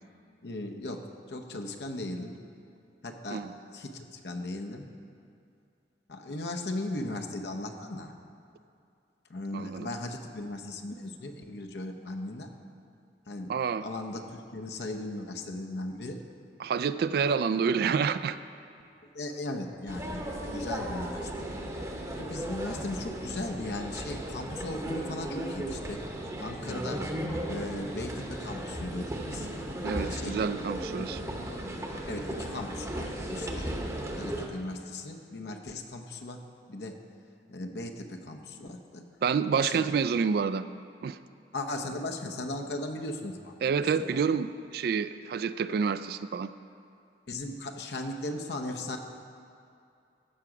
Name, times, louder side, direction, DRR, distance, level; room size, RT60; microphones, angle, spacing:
voice 1, 0.4-2.3 3.0-3.4 3.7-4.9 6.1-8.1 9.3-12.5 13.3-16.2 19.0-21.5 22.1-26.0 26.4-27.1 27.4-29.5 30.0-30.6 31.0-31.1 32.1-36.4 36.7-37.0 37.5-39.1 39.6-39.9 41.5-43.5 44.1-44.2 47.3-49.0, left 2 dB, 70° left, 4 dB, 0.8 m, -37 dB
voice 2, 9.5-9.9 13.5-13.8 16.6-18.4 29.8-31.2 39.2-40.7 41.0-41.2 43.6-46.5, right 6 dB, 60° right, 14 dB, 0.3 m, -28 dB
sound 1, 19.9-34.5, right 1 dB, 15° right, 0.9 m, -36 dB
14.0 x 5.8 x 4.9 m, 2.5 s
head